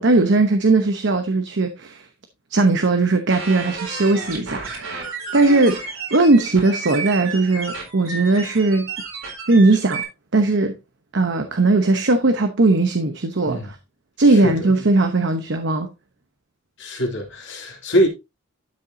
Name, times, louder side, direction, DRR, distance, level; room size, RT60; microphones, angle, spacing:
voice 1, 0.0-2.0 2.5-8.9 9.5-10.0 10.3-10.8 11.1-13.6 14.2-15.9, right 2 dB, 60° right, 0.9 m, -18 dB
sound 1, 3.3-10.0, right 4 dB, 80° right, 4.2 m, -32 dB
voice 2, 16.8-18.1, equal, 65° left, 2.8 m, -23 dB
12.0 x 6.6 x 2.7 m
head